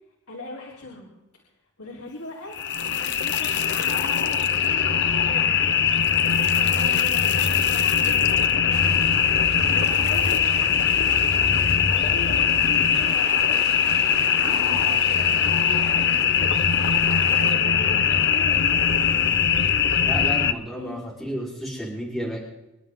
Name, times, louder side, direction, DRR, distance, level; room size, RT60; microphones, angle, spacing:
voice 1, 0.3-1.1 1.8-2.6 2.8-5.9 6.4-8.9 9.6-11.3 11.9-14.0 14.3-15.3 15.7-16.7 17.3-19.2 20.7-21.0, left 2 dB, 75° left, -3 dB, 3.6 m, -39 dB
sound 1, 2.5-20.5, left 7 dB, 50° left, 0.8 m, -21 dB
sound 2, 8.7-17.5, right 4 dB, 85° right, 3.6 m, -40 dB
voice 2, 20.0-22.4, equal, ahead, -6 dB, 3.9 m, -32 dB
27.0 x 12.0 x 3.7 m, 0.99 s
head